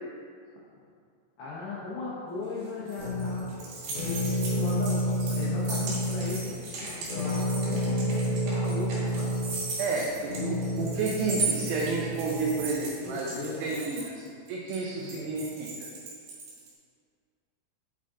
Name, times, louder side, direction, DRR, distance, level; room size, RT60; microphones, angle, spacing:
voice 1, 1.4-9.3 13.0-13.7 15.0-15.2, left 3 dB, 80° left, -8 dB, 2.1 m, -38 dB
sound 1, 2.4-16.7, right 3 dB, 65° right, 3.7 m, -37 dB
sound 2, 3.0-12.9, equal, 65° left, 1.4 m, -30 dB
voice 2, 9.8-14.2 14.5-15.9, right 3 dB, 90° right, -2 dB, 2.3 m, -31 dB
9.0 x 3.7 x 3.7 m, 2.2 s
omnidirectional pair, 5.5 m